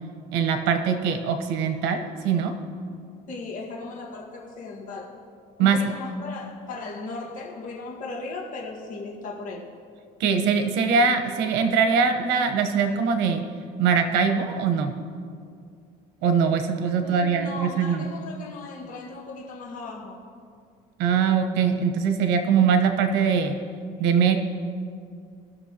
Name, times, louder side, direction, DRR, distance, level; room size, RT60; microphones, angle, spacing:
voice 1, 0.3-2.5 5.6-5.8 10.2-13.4 13.8-14.9 16.2-18.0 21.0-23.6 24.0-24.4, right 6 dB, 85° right, 6 dB, 1.1 m, -22 dB
voice 2, 3.3-5.2 5.6-9.7 16.9-20.2, left 3 dB, 50° left, -4 dB, 1.8 m, -37 dB
18.5 x 6.6 x 2.9 m, 2.2 s
cardioid pair, 125°, 17 cm